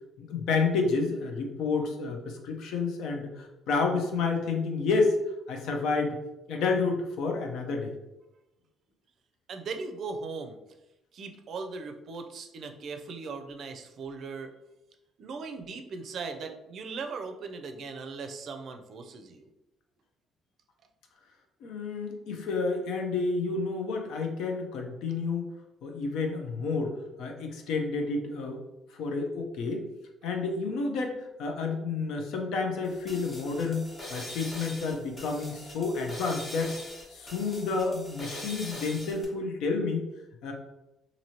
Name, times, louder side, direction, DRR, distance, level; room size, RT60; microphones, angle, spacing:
voice 1, 0.2-5.1 5.5-6.2 6.5-7.9 21.6-25.5 25.8-28.6 28.9-29.9 30.2-36.8 37.1-40.1 40.4-40.5, left 4 dB, 80° left, 2 dB, 0.6 m, -30 dB
voice 2, 9.5-10.6 11.1-14.5 15.2-19.5, right 4 dB, 55° right, 6 dB, 0.4 m, -38 dB
sound 1, 32.8-39.2, left 1 dB, 30° left, 0.9 m, -43 dB
3.0 x 2.6 x 2.8 m, 0.96 s
cardioid pair, 105°, 0 cm